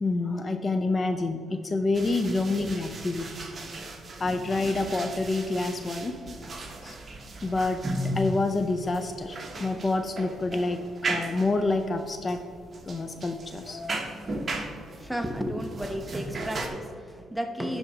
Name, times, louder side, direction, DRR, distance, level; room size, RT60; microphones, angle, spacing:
voice 1, 0.0-3.3 4.2-6.4 6.8-7.0 7.4-12.4 12.9-14.0, left 2 dB, 35° left, 7 dB, 0.5 m, -28 dB
sound 1, 1.9-16.7, right 1 dB, 35° right, 1.2 m, -36 dB
voice 2, 14.5-17.8, equal, 5° right, 6 dB, 0.8 m, -33 dB
11.5 x 4.0 x 4.9 m, 2.2 s
cardioid pair, 85°, 0 cm